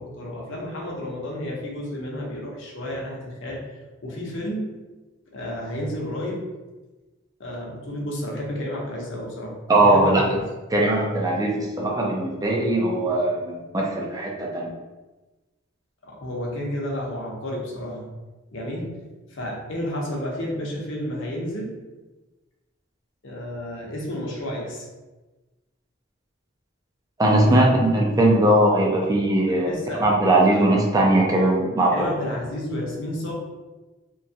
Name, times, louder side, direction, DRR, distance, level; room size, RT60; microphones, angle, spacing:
voice 1, 0.0-3.7 4.0-4.8 5.3-6.5 7.4-10.4 16.0-18.1 18.5-19.0 19.3-21.8 23.2-24.9 27.4-27.7 29.6-30.0 30.5-30.6 31.9-33.3, left 1 dB, 65° left, -2 dB, 0.7 m, -31 dB
voice 2, 9.7-10.2 10.7-14.7 27.2-29.7 30.0-32.0, right 1 dB, 15° right, -2 dB, 0.4 m, -20 dB
2.9 x 2.3 x 2.7 m, 1.2 s
head